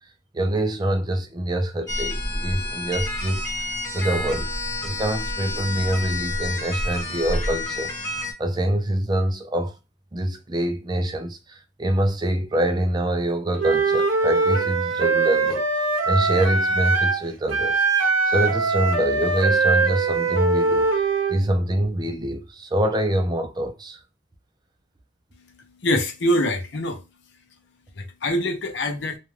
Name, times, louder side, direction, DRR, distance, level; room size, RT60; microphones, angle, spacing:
voice 1, 0.3-3.7 3.9-4.5 4.8-9.8 10.1-24.0, right 1 dB, 20° right, 0.4 m, -25 dB
sound 1, 1.9-8.3, left 1 dB, 15° left, 0.7 m, -29 dB
Wind instrument woodwind instrument, 13.6-17.2 17.5-21.4, right 4 dB, 85° right, 0.7 m, -21 dB
voice 2, 25.8-27.0 28.2-29.2, left 1 dB, 65° left, 0.6 m, -23 dB
2.4 x 2.2 x 3.1 m
head